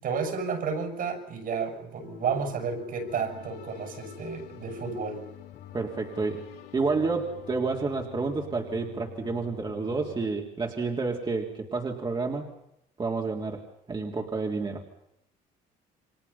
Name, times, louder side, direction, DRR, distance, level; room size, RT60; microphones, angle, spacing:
voice 1, 0.0-5.2, right 5 dB, 60° right, 6 dB, 7.5 m, -31 dB
sound 1, 2.0-10.3, left 11 dB, 80° left, 5.5 m, -46 dB
voice 2, 5.7-6.4 6.7-12.5 13.0-13.6 13.9-14.8, right 4 dB, 25° right, 0 dB, 3.5 m, -29 dB
29.5 x 25.0 x 5.7 m, 0.80 s
cardioid pair, 110°, 17 cm